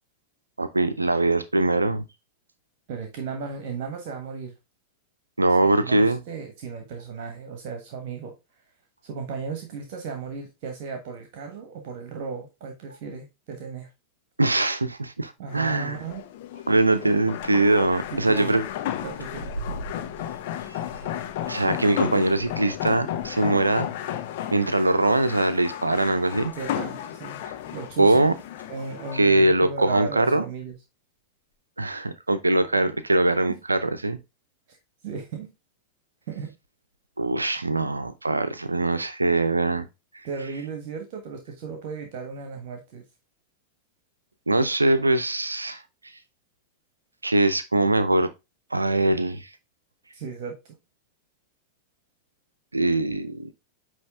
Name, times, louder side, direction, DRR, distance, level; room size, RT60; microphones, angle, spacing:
voice 1, 0.6-2.0 5.4-6.2 14.4-16.0 16.7-18.6 21.5-23.9 24.5-26.5 28.0-28.3 29.1-30.4 31.8-34.2 37.2-39.9 44.5-45.8 47.2-48.3 48.7-49.5 52.7-53.5, right 2 dB, 80° right, 0.7 m, -22 dB
voice 2, 2.9-4.5 5.6-8.3 9.0-13.9 15.4-16.2 18.1-18.6 19.0-19.5 26.5-27.4 27.7-28.3 28.7-30.7 33.5-33.6 34.7-34.8 35.0-35.5 36.3-36.6 40.2-43.0 50.1-50.6, right 5 dB, 50° right, 1.4 m, -35 dB
sound 1, 15.4-15.5 16.0-16.1 16.7-23.4 23.8-24.0 26.4-28.8 29.8-29.9 30.7-30.8, right 2 dB, 90° left, 1.7 m, -43 dB
sound 2, 15.5-29.2, left 11 dB, 50° left, 0.8 m, -34 dB
9.5 x 3.2 x 3.4 m
figure-of-eight pair, 90°, 0 cm